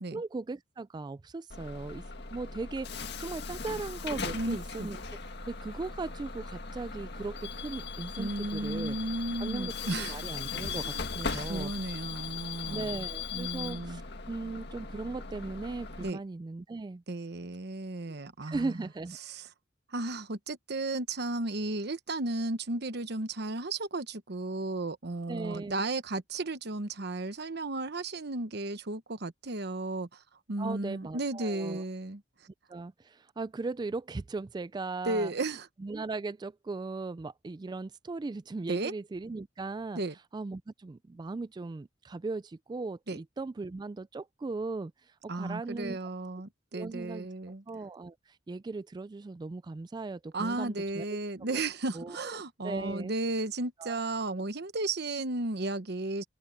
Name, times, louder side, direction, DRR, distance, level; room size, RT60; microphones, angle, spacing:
voice 1, 0.1-2.0 2.3-5.0 5.5-9.0 9.4-9.7 10.0-11.7 12.7-14.0 14.3-17.0 18.4-19.2 25.3-25.8 30.6-31.8 32.7-35.3 35.8-40.0 40.3-46.0 46.7-51.1 51.9-53.1 53.8-54.0, right 3 dB, 25° right, 0.3 m, -38 dB
Bus / Alarm, 1.5-16.1, left 4 dB, 65° left, 1.8 m, -39 dB
voice 2, 4.3-4.9 8.2-10.2 10.6-13.0 13.3-14.0 16.0-16.2 17.1-18.9 19.2-19.5 19.9-30.2 30.5-32.2 35.0-35.7 38.7-38.9 39.9-40.1 43.1-43.2 45.3-47.6 50.3-56.2, right 2 dB, 60° right, 1.1 m, -34 dB
head